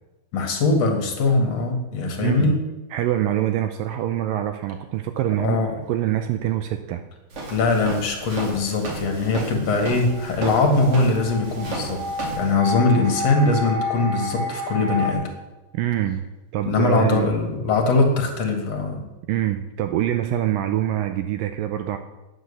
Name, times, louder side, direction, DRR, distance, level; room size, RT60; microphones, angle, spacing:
voice 1, 0.3-2.6 5.4-5.8 7.5-12.0 12.3-15.3 16.6-19.0, left 3 dB, 50° left, 3 dB, 2.4 m, -21 dB
voice 2, 2.2-2.6 2.9-5.6 5.9-7.0 15.7-16.2 16.5-17.3 19.3-22.0, right 12 dB, 85° right, 7 dB, 2.1 m, -24 dB
Walk footsteps, 7.3-12.5, right 2 dB, 45° right, 3.0 m, -33 dB
sound 1, 10.1-15.1, left 1 dB, 60° right, 3.5 m, -30 dB
10.5 x 9.0 x 6.9 m, 1.1 s
omnidirectional pair, 4.5 m